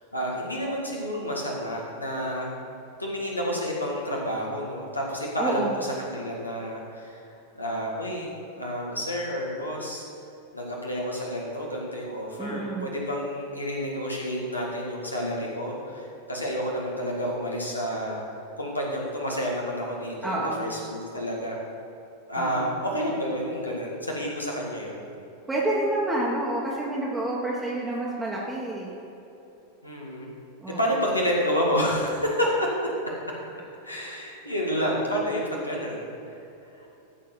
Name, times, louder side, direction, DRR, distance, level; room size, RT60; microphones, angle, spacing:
voice 1, 0.1-2.5 3.0-10.0 10.5-18.2 18.6-21.6 22.3-25.0 29.8-30.3 30.7-32.7 33.8-36.4 36.8-36.9, equal, 85° left, -2 dB, 2.0 m, -29 dB
voice 2, 5.4-5.8 12.4-12.9 20.2-20.7 22.4-22.8 25.5-28.9 30.6-30.8, right 1 dB, 10° right, -5 dB, 1.4 m, -28 dB
13.5 x 4.6 x 6.8 m, 2.9 s
figure-of-eight pair, 90°, 0 cm